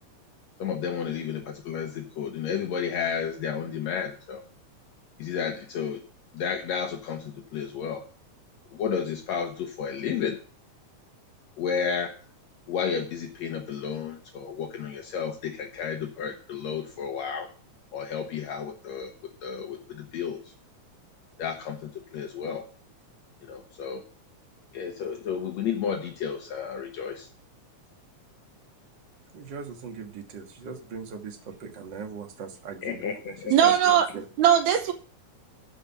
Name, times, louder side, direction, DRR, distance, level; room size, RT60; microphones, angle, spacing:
voice 1, 0.6-4.4 5.2-6.0 6.3-8.0 8.7-10.4 11.6-12.1 12.7-17.5 17.9-19.1 19.4-20.4 21.4-22.6 23.4-24.0 24.7-27.3 32.8-33.5, left 7 dB, 70° left, 3 dB, 2.2 m, -32 dB
voice 2, 29.3-34.2, right 5 dB, 45° right, 4 dB, 1.9 m, -40 dB
voice 3, 33.5-34.1 34.4-34.9, right 10 dB, 80° right, 6 dB, 2.3 m, -19 dB
12.5 x 5.1 x 7.1 m, 0.42 s
omnidirectional pair, 3.4 m